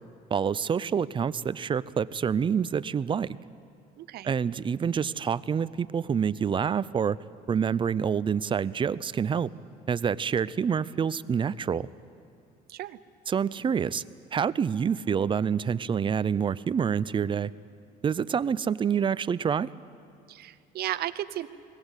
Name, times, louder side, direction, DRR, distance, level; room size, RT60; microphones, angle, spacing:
voice 1, 0.3-3.4 4.2-7.2 7.5-9.5 9.9-11.9 13.3-14.0 14.3-17.5 18.0-19.7, right 7 dB, 30° right, 17 dB, 0.5 m, -27 dB
voice 2, 4.0-4.3 12.7-13.0 20.3-21.5, right 13 dB, 70° right, 14 dB, 0.8 m, -34 dB
21.0 x 18.5 x 8.2 m, 2.4 s
cardioid pair, 110°, 17 cm